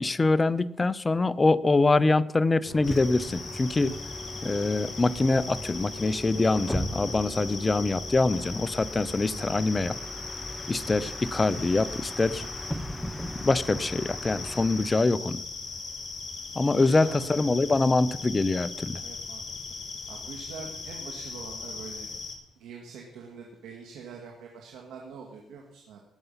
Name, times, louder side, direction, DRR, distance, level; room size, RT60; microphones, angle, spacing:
voice 1, 0.0-4.0 4.4-10.0 10.7-12.5 13.4-15.4 16.6-19.0, left 3 dB, 25° left, 16 dB, 0.6 m, -24 dB
Bus, 2.6-15.1, equal, ahead, 0.9 m, -39 dB
sound 1, 2.8-22.4, left 4 dB, 40° left, 3.2 m, -39 dB
voice 2, 12.3-12.7 14.6-14.8 16.5-17.9 19.0-19.4 20.1-22.1 22.6-26.0, right 5 dB, 85° right, 0 dB, 2.0 m, -44 dB
19.0 x 6.9 x 5.6 m, 0.86 s
cardioid pair, 90°, 0 cm